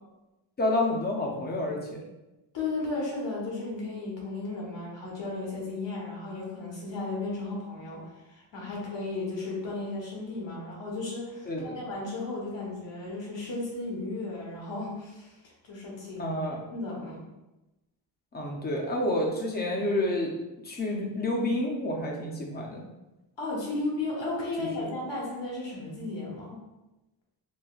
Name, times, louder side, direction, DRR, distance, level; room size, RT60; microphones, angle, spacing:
voice 1, 0.6-1.8 8.6-8.7 11.5-11.8 16.2-16.6 18.3-20.3 20.6-22.8 24.6-24.9, left 1 dB, 25° left, -1 dB, 0.5 m, -29 dB
voice 2, 2.5-15.4 15.6-16.3 16.7-17.2 23.4-26.6, left 2 dB, 75° left, -3 dB, 1.1 m, -34 dB
3.8 x 2.1 x 2.4 m, 1.0 s
wide cardioid pair, 145°, 45 cm